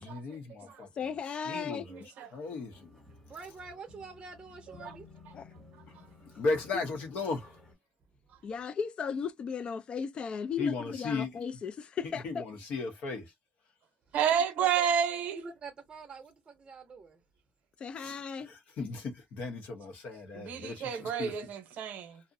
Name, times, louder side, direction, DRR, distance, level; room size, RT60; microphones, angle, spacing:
voice 1, 0.0-0.9 1.5-2.0 2.3-2.9 6.4-7.5 10.6-11.3 12.2-13.2 18.0-18.2 18.5-21.3, left 3 dB, 75° left, 0.7 m, -35 dB
voice 2, 0.6-1.8 5.3-5.5 6.7-6.8 8.4-12.4 17.8-18.5, left 6 dB, 40° left, 0.3 m, -36 dB
voice 3, 1.9-2.3 4.8-4.9 14.1-15.4 20.3-22.2, right 8 dB, 75° right, 0.7 m, -30 dB
sound 1, 2.7-7.7, left 3 dB, 15° left, 1.0 m, -55 dB
voice 4, 3.3-5.1 14.3-14.8 15.3-17.2, right 4 dB, 30° right, 0.5 m, -46 dB
2.5 x 2.0 x 2.5 m
cardioid pair, 160°, 3 cm